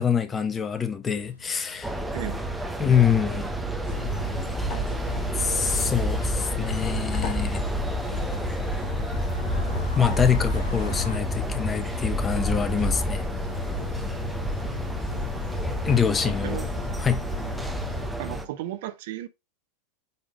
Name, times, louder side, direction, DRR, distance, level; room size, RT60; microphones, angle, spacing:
voice 1, 0.0-2.0 2.8-3.5 5.3-7.6 9.9-13.3 15.8-16.6 17.0-17.2, left 7 dB, 20° left, 0.6 m, -25 dB
sound 1, 1.1-11.2, left 3 dB, 75° left, 1.1 m, -48 dB
sound 2, 1.8-18.5, right 1 dB, 5° right, 1.0 m, -29 dB
sound 3, 3.9-18.1, left 6 dB, 45° left, 1.6 m, -34 dB
voice 2, 16.2-16.6 18.2-19.3, right 13 dB, 55° right, 0.8 m, -34 dB
8.1 x 3.7 x 3.3 m
figure-of-eight pair, 85°, 0 cm